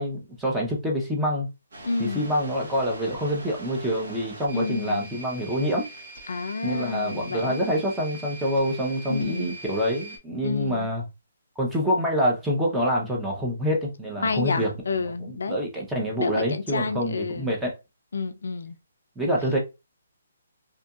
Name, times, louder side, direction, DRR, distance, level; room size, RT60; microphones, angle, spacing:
voice 1, 0.0-1.5 2.0-5.9 6.6-11.0 11.6-14.7 15.2-17.8 19.2-19.6, equal, 5° right, 0.7 m, -26 dB
sound 1, 1.7-10.2, right 2 dB, 70° right, 1.2 m, -42 dB
voice 2, 1.8-2.3 4.5-5.1 6.3-7.6 9.1-9.5 10.4-10.9 14.2-15.6 16.2-17.5 18.1-18.8, left 4 dB, 75° left, 0.4 m, -29 dB
2.8 x 2.5 x 2.3 m
hypercardioid pair, 155°, 0 cm